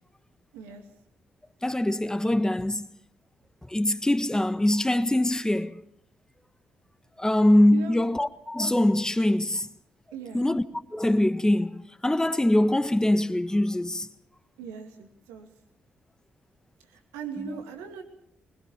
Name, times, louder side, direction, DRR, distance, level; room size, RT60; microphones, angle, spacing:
voice 1, 0.5-0.8 7.7-8.0 10.1-10.4 14.6-15.5 16.9-18.0, right 7 dB, 85° right, 2.6 m, -39 dB
voice 2, 1.6-2.9 3.7-5.8 7.2-9.7 10.3-10.6 10.9-14.1 17.5-17.6, left 1 dB, 15° left, 1.5 m, -23 dB
20.5 x 20.5 x 7.3 m
hypercardioid pair, 40°, 5 cm